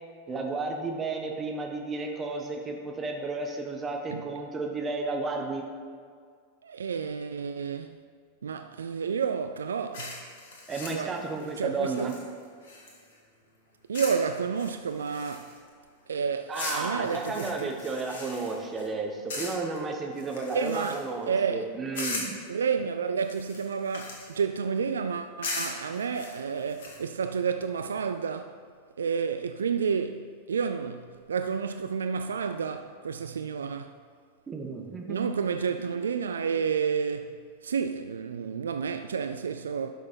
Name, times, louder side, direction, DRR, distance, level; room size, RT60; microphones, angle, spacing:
voice 1, 0.3-5.6 10.7-12.1 16.5-22.3 34.5-35.2, right 3 dB, 20° right, 1.4 m, -32 dB
voice 2, 6.6-8.0 8.4-10.2 10.9-11.2 11.6-12.1 13.9-15.5 16.1-17.8 20.5-21.6 22.5-28.6 29.0-33.9 35.1-39.9, right 6 dB, 70° right, 0.3 m, -30 dB
sound 1, 9.9-13.2 13.9-14.3 14.6-15.7 16.5-18.9 19.3-19.8 20.2-21.2 21.9-22.5 23.2-24.4 25.4-27.0, left 3 dB, 60° left, 1.9 m, -38 dB
11.5 x 6.1 x 4.5 m
figure-of-eight pair, 90°, 0 cm